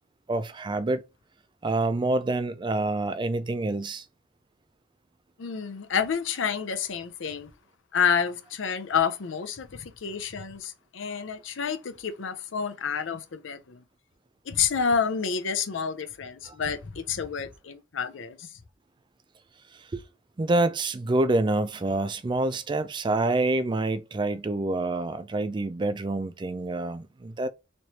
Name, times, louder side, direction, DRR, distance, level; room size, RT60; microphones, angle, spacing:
voice 1, 0.3-1.0 1.6-4.0 16.4-16.6 19.9-20.0 20.4-27.5, right 2 dB, 25° right, 0.4 m, -27 dB
voice 2, 5.4-7.5 7.9-13.8 14.5-18.5, left 6 dB, 85° left, 0.6 m, -29 dB
3.1 x 3.0 x 2.8 m
head